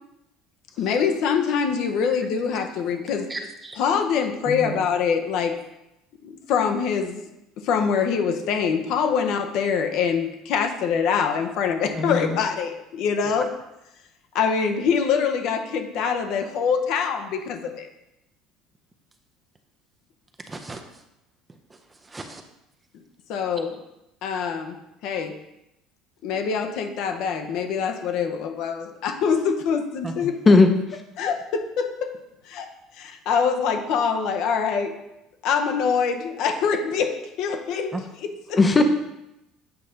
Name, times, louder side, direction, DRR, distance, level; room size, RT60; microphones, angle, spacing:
voice 1, 0.8-3.3 3.8-5.6 6.2-7.2 7.6-13.5 14.3-17.9 23.3-23.8 24.2-24.8 25.0-25.3 26.2-30.3 31.2-32.1 32.4-32.7 33.0-34.9 35.4-38.0 38.2-38.6, left 6 dB, 65° left, 5 dB, 0.7 m, -24 dB
voice 2, 3.3-3.8 20.5-21.0 22.0-22.4 30.0-30.1 37.9-38.0 38.6-38.7, right 2 dB, 15° right, 5 dB, 0.5 m, -35 dB
voice 3, 4.5-4.8 12.0-12.4 30.2-30.7 38.6-38.8, left 3 dB, 20° left, 6 dB, 0.7 m, -18 dB
8.1 x 2.8 x 5.0 m, 0.88 s
cardioid pair, 125°, 0 cm